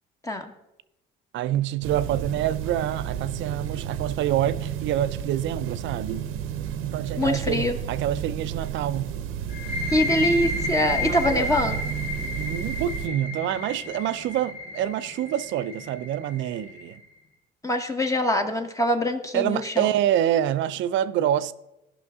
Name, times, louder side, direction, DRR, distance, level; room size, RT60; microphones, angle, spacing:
voice 1, 1.3-6.3 6.8-9.2 11.0-11.5 12.4-17.0 19.3-21.5, right 11 dB, 65° right, 0.5 m, -26 dB
sound 1, 1.8-13.1, right 9 dB, 80° right, 0.9 m, -32 dB
voice 2, 7.2-7.8 9.9-11.8 17.6-19.9, left 1 dB, 15° left, 0.9 m, -24 dB
sound 2, 9.5-16.9, left 3 dB, 85° left, 3.0 m, -32 dB
15.5 x 5.9 x 3.6 m
cardioid pair, 105°, 21 cm